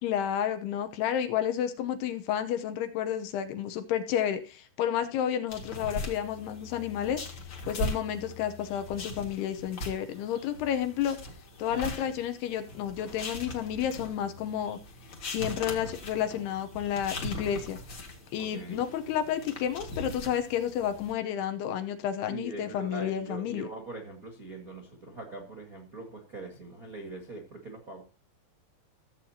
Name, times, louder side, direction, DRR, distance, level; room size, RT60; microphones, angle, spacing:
voice 1, 0.0-7.2 7.7-11.2 11.6-14.8 15.2-17.8 18.3-23.7, left 9 dB, 75° left, 9 dB, 2.9 m, -31 dB
sound 1, 5.5-21.1, left 1 dB, 40° left, 1.8 m, -40 dB
voice 2, 18.4-18.8 22.3-28.0, right 2 dB, 45° right, 0 dB, 1.1 m, -42 dB
15.5 x 8.2 x 2.9 m, 0.37 s
omnidirectional pair, 4.9 m